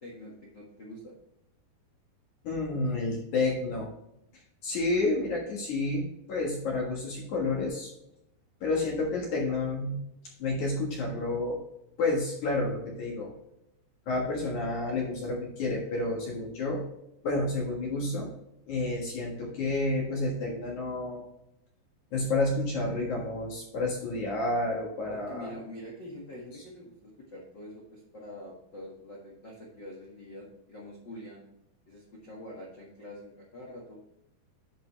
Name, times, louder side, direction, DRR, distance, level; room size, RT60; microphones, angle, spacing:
voice 1, 0.0-1.1 25.1-31.4 31.9-34.0, left 1 dB, 80° left, -3 dB, 1.0 m, -45 dB
voice 2, 2.4-3.9 4.6-7.9 8.6-10.0 10.4-11.6 12.0-13.3 14.1-16.8 17.2-18.3 18.7-21.2 22.1-25.5, left 2 dB, 55° left, -2 dB, 2.4 m, -30 dB
10.5 x 5.8 x 3.2 m, 0.81 s
omnidirectional pair, 5.0 m